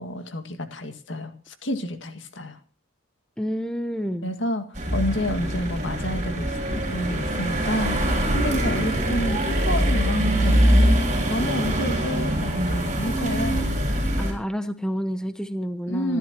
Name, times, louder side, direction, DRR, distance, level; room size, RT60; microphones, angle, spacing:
voice 1, 0.0-2.6 4.2-8.0 8.3-13.6 15.9-16.2, left 1 dB, 65° left, 8 dB, 2.0 m, -30 dB
voice 2, 3.4-4.3 14.2-16.2, equal, 5° left, 10 dB, 0.7 m, -29 dB
sound 1, 4.8-14.3, right 1 dB, 35° right, 6.1 m, -23 dB
26.5 x 12.5 x 3.0 m, 0.37 s
head